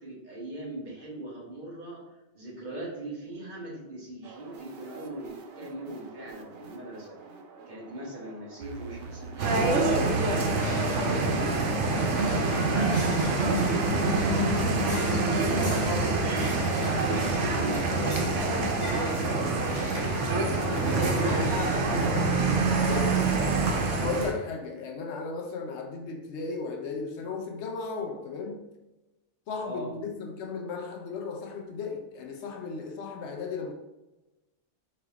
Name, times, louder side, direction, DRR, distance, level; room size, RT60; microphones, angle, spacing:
voice 1, 0.0-2.0 2.3-7.1 7.7-10.6 11.0-16.6 17.0-19.4 19.8-22.4 22.8-24.1 25.0-25.1 29.6-29.9, right 1 dB, 40° right, 1.3 m, -40 dB
sound 1, 4.2-22.8, right 5 dB, 65° right, 0.7 m, -41 dB
sound 2, 9.4-24.3, right 3 dB, 85° right, 1.0 m, -26 dB
sound 3, 10.1-22.5, left 1 dB, 15° left, 0.8 m, -39 dB
voice 2, 22.6-23.3 23.7-28.7 29.5-33.7, left 4 dB, 70° left, 0.8 m, -35 dB
4.2 x 2.8 x 3.5 m
omnidirectional pair, 1.2 m